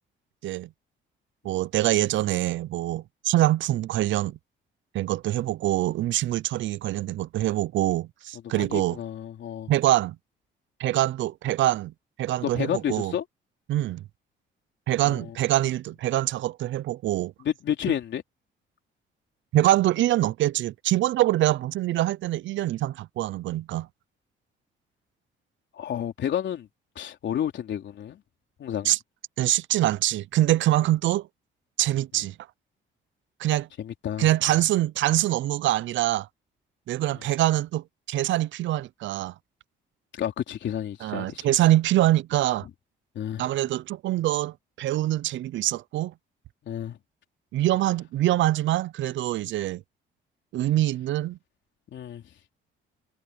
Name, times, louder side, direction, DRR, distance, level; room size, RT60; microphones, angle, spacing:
voice 1, 1.4-4.4 4.9-9.0 9.7-10.2 10.8-11.9 12.2-13.1 13.7-14.0 14.9-17.3 19.5-23.9 28.8-29.0 29.4-31.3 31.8-32.4 33.4-33.7 34.2-36.3 36.9-39.3 41.0-42.7 43.4-46.1 47.5-49.8 50.5-51.4, right 14 dB, 70° right, 0.5 m, -24 dB
voice 2, 8.5-9.7 12.5-13.2 15.0-15.4 17.4-18.2 25.7-26.7 27.0-28.2 28.6-28.9 33.8-34.3 40.1-41.5 43.2-43.5 46.6-47.0 51.9-52.2, left 10 dB, 65° left, 3.7 m, -30 dB
cardioid pair, 90°, 20 cm